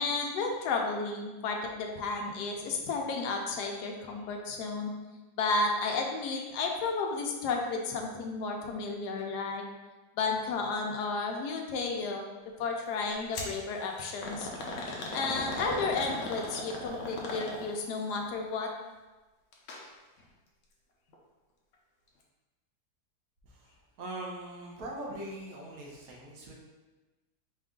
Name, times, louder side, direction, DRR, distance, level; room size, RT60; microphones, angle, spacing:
voice 1, 0.0-4.9 5.4-9.6 10.2-12.3 12.6-14.5 15.1-18.7, left 4 dB, 85° left, 2 dB, 1.2 m, -32 dB
sound 1, 13.3-13.6 14.2-17.9 19.5-19.8 20.2-20.3 21.1-21.2, left 2 dB, 65° left, 1.0 m, -37 dB
voice 2, 23.4-26.5, right 1 dB, 65° right, -2 dB, 1.2 m, -42 dB
4.5 x 2.4 x 3.6 m, 1.2 s
omnidirectional pair, 1.7 m